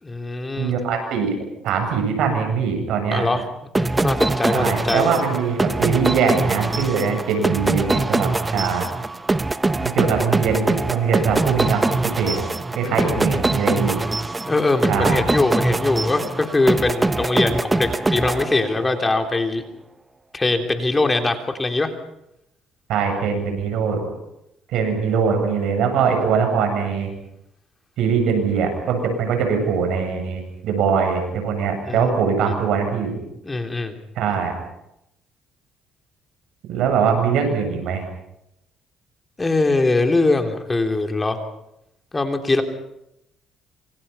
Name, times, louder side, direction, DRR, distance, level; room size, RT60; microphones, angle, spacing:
voice 1, 0.0-0.8 3.1-3.4 3.8-5.1 12.8-13.2 14.5-19.6 20.3-21.9 31.8-32.5 33.4-33.9 39.4-41.4 42.1-42.6, left 2 dB, 20° left, 5 dB, 3.4 m, -22 dB
voice 2, 0.6-1.3 1.6-3.3 4.5-8.9 9.8-12.5 12.8-14.0 14.9-15.3 22.9-24.0 24.7-27.1 28.0-33.2 34.2-34.5 36.7-38.0, right 6 dB, 80° right, 5 dB, 7.8 m, -22 dB
sound 1, 3.7-19.0, right 2 dB, 20° right, 0.9 m, -23 dB
27.5 x 26.0 x 5.7 m, 0.81 s
cardioid pair, 90°, 0 cm